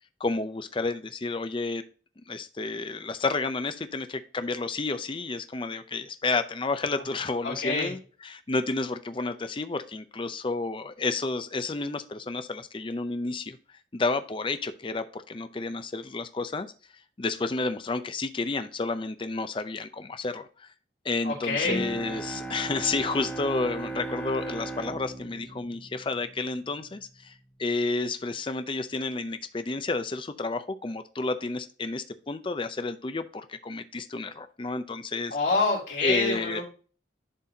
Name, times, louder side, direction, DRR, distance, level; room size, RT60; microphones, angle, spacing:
voice 1, 0.2-1.8 2.3-13.6 13.9-16.7 17.2-20.7 21.0-35.4 36.0-36.6, left 3 dB, 30° left, 10 dB, 0.5 m, -31 dB
voice 2, 7.4-7.9 21.2-21.9 35.3-36.6, left 3 dB, 80° left, -2 dB, 3.2 m, -26 dB
Bowed string instrument, 21.6-26.8, right 2 dB, 10° left, 0.9 m, -37 dB
11.0 x 4.1 x 2.8 m, 0.38 s
head